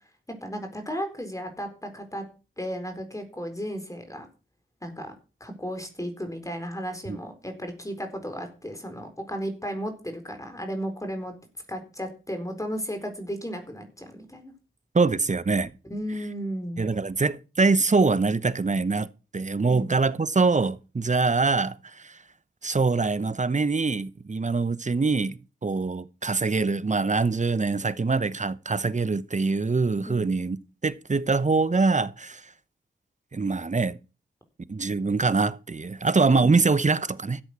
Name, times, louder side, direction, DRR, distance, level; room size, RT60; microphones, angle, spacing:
voice 1, 0.4-2.2 2.6-4.3 4.8-5.1 5.4-11.3 11.7-14.5 15.9-16.8 19.7-19.9 30.1-30.3 36.3-36.5, equal, 15° left, 4.3 m, -34 dB
voice 2, 14.9-15.7 16.8-19.1 19.3-22.1 22.6-30.6 30.8-32.4 33.3-34.0 34.7-37.4, right 4 dB, 35° right, 0.9 m, -24 dB
13.5 x 8.1 x 6.2 m
cardioid pair, 50°, 21 cm